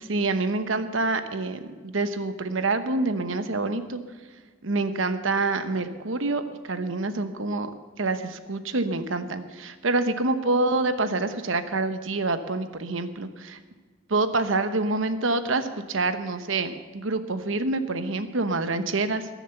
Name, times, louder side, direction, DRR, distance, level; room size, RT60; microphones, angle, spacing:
voice 1, 0.0-4.0 4.6-6.4 6.7-7.7 8.0-13.6 14.1-19.3, right 3 dB, 70° right, 10 dB, 1.0 m, -26 dB
21.0 x 7.1 x 6.9 m, 1.4 s
head